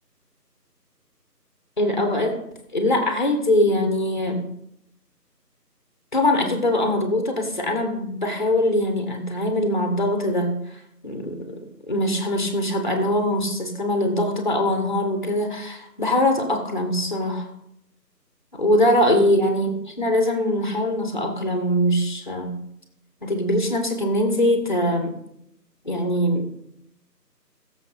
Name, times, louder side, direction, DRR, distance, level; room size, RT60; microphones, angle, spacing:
voice 1, 1.8-2.4 2.7-4.5 6.1-11.6 11.9-17.5 18.6-22.6 23.2-25.1 25.8-26.6, left 1 dB, 30° left, 4 dB, 1.6 m, -22 dB
19.5 x 7.3 x 4.1 m, 0.78 s
figure-of-eight pair, 170°, 50 cm